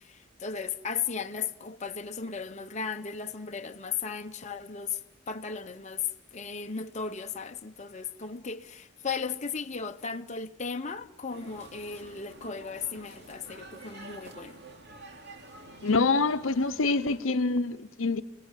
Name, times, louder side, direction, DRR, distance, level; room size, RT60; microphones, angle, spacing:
voice 1, 0.0-5.0 5.3-14.6, left 6 dB, 35° left, 0.9 m, -36 dB
sound 1, 11.3-17.2, right 2 dB, 55° right, 3.2 m, -49 dB
voice 2, 15.8-18.2, left 3 dB, 75° left, 0.9 m, -26 dB
29.0 x 20.5 x 9.1 m
head